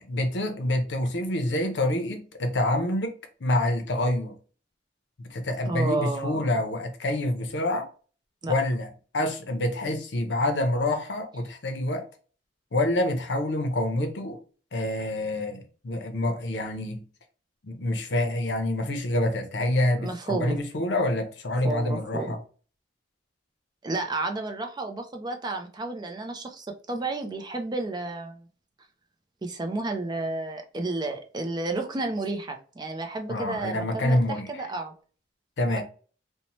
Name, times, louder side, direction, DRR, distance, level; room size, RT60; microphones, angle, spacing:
voice 1, 0.0-4.3 5.2-7.9 8.5-12.0 12.7-14.4 14.7-17.0 17.6-22.4 33.3-34.5 35.6-35.8, left 1 dB, 70° left, 0.6 m, -27 dB
voice 2, 5.7-6.5 8.4-8.5 20.0-20.6 21.6-22.4 23.8-28.5 29.4-34.9 35.7-35.8, right 2 dB, 25° right, 0.4 m, -31 dB
2.7 x 2.1 x 2.9 m
head